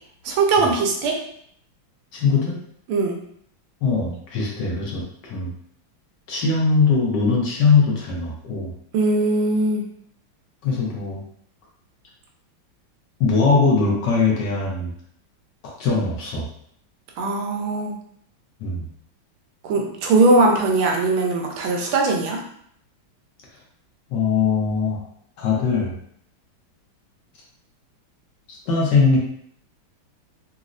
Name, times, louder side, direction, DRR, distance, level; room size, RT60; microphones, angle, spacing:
voice 1, 0.2-1.2 2.9-3.2 8.9-9.8 17.2-17.9 19.6-22.4, right 3 dB, 85° right, 1 dB, 1.5 m, -20 dB
voice 2, 2.1-2.6 3.8-5.5 6.3-8.7 10.6-11.2 13.2-14.9 15.6-16.5 18.6-18.8 24.1-25.0 25.4-25.9 28.5-29.2, left 4 dB, 65° left, -3 dB, 1.2 m, -21 dB
4.0 x 2.0 x 2.4 m, 0.67 s
omnidirectional pair, 2.3 m